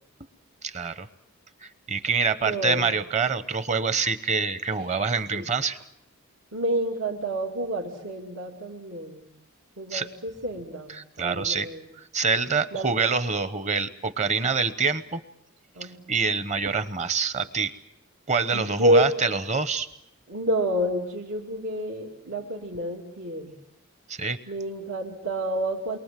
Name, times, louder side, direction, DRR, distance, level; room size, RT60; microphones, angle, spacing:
voice 1, 0.6-1.1 1.6-5.8 9.9-10.1 10.9-11.7 12.0-15.2 15.8-17.7 18.3-19.9 24.1-24.4, right 5 dB, 30° right, 12 dB, 1.0 m, -26 dB
voice 2, 2.4-2.9 4.8-4.9 5.3-5.4 6.5-9.3 9.8-11.8 12.7-12.9 15.8-16.0 18.5-19.1 20.3-23.5 24.5-26.0, equal, 80° right, -1 dB, 2.6 m, -28 dB
29.0 x 23.0 x 7.6 m, 0.81 s
head